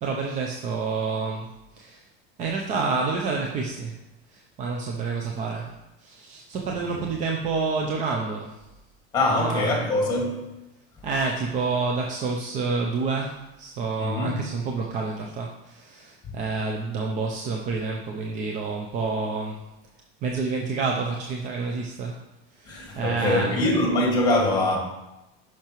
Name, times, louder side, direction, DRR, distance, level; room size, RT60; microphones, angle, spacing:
voice 1, 0.0-2.1 2.4-4.0 4.3-8.6 9.2-9.9 11.0-19.6 20.2-22.2 22.5-23.7, right 4 dB, 25° right, 0.5 m, -29 dB
voice 2, 9.1-10.5 14.0-14.4 22.7-24.8, left 2 dB, 15° left, 1.8 m, -24 dB
10.5 x 5.8 x 3.0 m
supercardioid pair, 170°, 30 cm